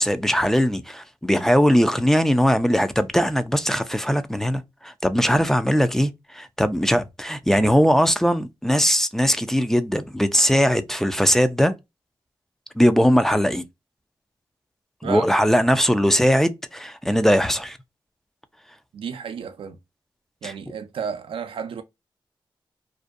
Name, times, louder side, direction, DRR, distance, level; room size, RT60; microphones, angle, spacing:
voice 1, 0.0-11.7 12.8-13.6 15.0-17.8 20.4-20.5, equal, 5° left, 0.3 m, -20 dB
voice 2, 15.0-15.3 18.9-19.8 20.4-21.8, right 7 dB, 90° right, 0.4 m, -32 dB
2.5 x 2.1 x 2.3 m
cardioid pair, 70°, 9 cm